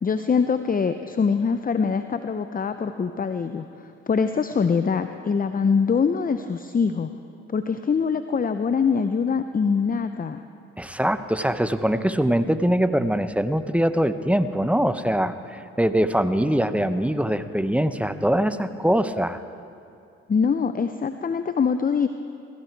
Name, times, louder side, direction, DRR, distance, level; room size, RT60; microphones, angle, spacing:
voice 1, 0.0-7.1 7.5-10.4 20.3-22.1, left 5 dB, 30° left, 9 dB, 0.7 m, -23 dB
voice 2, 10.8-19.4, equal, 5° right, 11 dB, 0.9 m, -23 dB
18.0 x 15.5 x 4.7 m, 2.5 s
hypercardioid pair, 45°, 30 cm